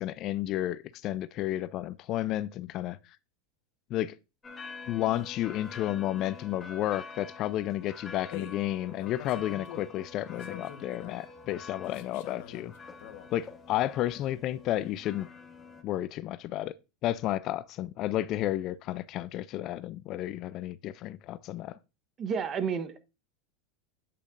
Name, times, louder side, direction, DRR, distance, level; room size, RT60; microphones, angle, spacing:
voice 1, 0.0-3.0 3.9-4.1 4.9-12.7 13.3-15.3 15.8-16.7 17.0-21.8, left 13 dB, 45° left, 0.4 m, -32 dB
sound 1, 4.4-15.8, left 4 dB, 20° left, 1.3 m, -47 dB
sound 2, 8.3-8.6 9.0-10.0 10.3-11.2 11.8-13.3, left 9 dB, 65° left, 1.3 m, -45 dB
voice 2, 22.2-23.0, right 6 dB, 30° right, 1.1 m, -30 dB
8.5 x 8.3 x 2.5 m
supercardioid pair, 125°, 0 cm